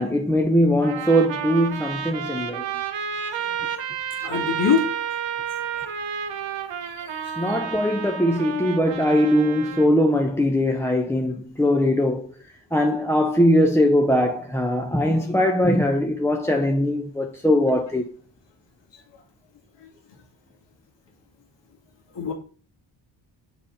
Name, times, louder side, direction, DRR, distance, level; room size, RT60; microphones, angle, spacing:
voice 1, 0.0-2.7 7.4-12.3 12.7-18.1, equal, 5° left, 0.6 m, -21 dB
Trumpet, 0.8-9.9, right 8 dB, 70° right, 1.0 m, -31 dB
voice 2, 3.3-3.8 4.2-4.9 5.8-5.9 7.2-7.3 22.2-22.3, left 6 dB, 65° left, 1.9 m, -24 dB
6.2 x 4.2 x 3.8 m
cardioid pair, 65°, 46 cm